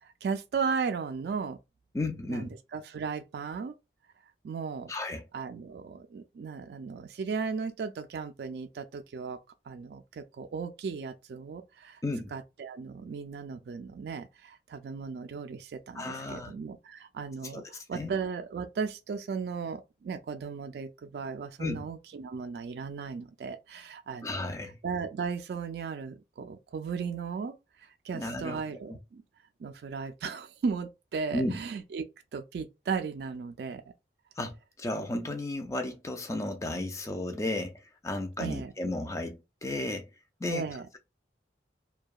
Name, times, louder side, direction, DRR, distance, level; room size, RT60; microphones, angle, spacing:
voice 1, 0.0-1.6 2.3-3.7 4.4-4.9 5.3-9.4 9.7-12.0 12.3-24.3 24.8-29.2 29.6-32.0 32.3-33.9 38.4-38.7 40.5-40.9, right 5 dB, 65° right, 0.3 m, -36 dB
voice 2, 1.9-2.5 4.9-5.2 12.0-12.3 15.9-16.5 17.4-17.6 17.9-18.1 21.6-21.9 24.2-24.8 28.1-28.6 28.9-29.0 31.3-31.6 34.4-40.1 40.4-40.6, left 2 dB, 15° left, 0.3 m, -34 dB
2.6 x 2.2 x 2.3 m
head